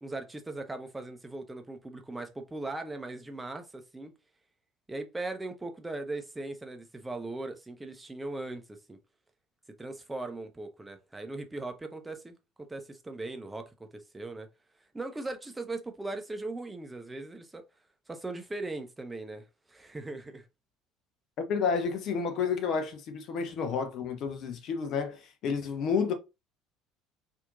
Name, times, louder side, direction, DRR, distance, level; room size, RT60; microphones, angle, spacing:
voice 1, 0.0-4.1 4.9-9.0 9.8-14.5 14.9-17.6 18.1-20.5, right 2 dB, 10° right, 0.6 m, -39 dB
voice 2, 21.5-26.1, left 6 dB, 50° left, 0.7 m, -30 dB
4.2 x 2.7 x 2.4 m
figure-of-eight pair, 60°, 0 cm